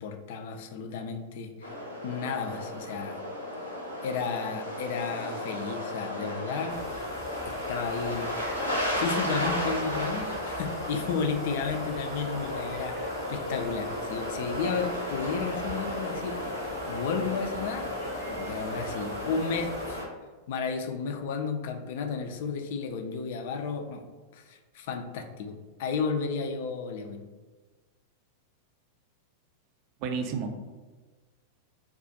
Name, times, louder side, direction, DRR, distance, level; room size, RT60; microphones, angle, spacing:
voice 1, 0.0-3.2 4.0-6.8 7.4-8.3 8.7-16.4 16.9-17.9 18.2-20.0 20.5-24.1 24.3-27.3, left 5 dB, 55° left, 6 dB, 0.3 m, -33 dB
sound 1, 1.6-20.1, left 1 dB, 85° left, 0.7 m, -34 dB
sound 2, 6.7-20.0, left 2 dB, 10° left, 0.8 m, -47 dB
voice 2, 30.0-30.7, right 5 dB, 40° right, 5 dB, 0.4 m, -32 dB
2.4 x 2.4 x 3.8 m, 1.3 s
figure-of-eight pair, 90°, 0 cm